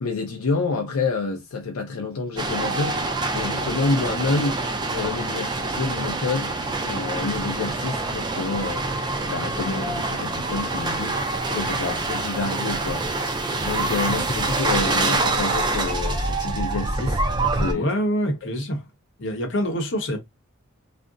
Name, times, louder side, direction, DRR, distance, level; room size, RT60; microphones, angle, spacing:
voice 1, 0.0-6.5 6.9-8.9 9.3-17.2 17.5-17.9, left 3 dB, 80° left, 0.5 m, -28 dB
sound 1, 2.4-17.7, right 2 dB, 20° right, 0.3 m, -26 dB
voice 2, 17.7-18.9 19.2-20.2, equal, 55° left, 0.8 m, -25 dB
2.5 x 2.0 x 3.7 m
head